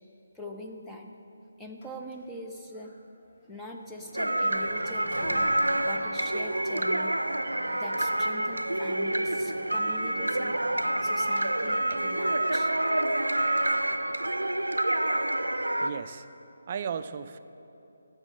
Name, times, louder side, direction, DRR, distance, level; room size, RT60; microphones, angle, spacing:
voice 1, 0.3-1.1 1.6-2.9 3.5-5.5 5.7-7.1 7.7-10.5 11.0-12.7, left 1 dB, 5° left, -1 dB, 0.8 m, -42 dB
Mechanisms, 1.8-2.4 2.7-3.0 3.2-11.4, left 1 dB, 35° left, 1.6 m, -48 dB
sound 1, 4.1-15.9, right 1 dB, 85° right, 0.6 m, -27 dB
voice 2, 15.8-16.3 16.7-17.4, right 7 dB, 40° right, 11 dB, 0.4 m, -35 dB
11.0 x 7.4 x 7.7 m, 2.9 s
figure-of-eight pair, 150°, 0 cm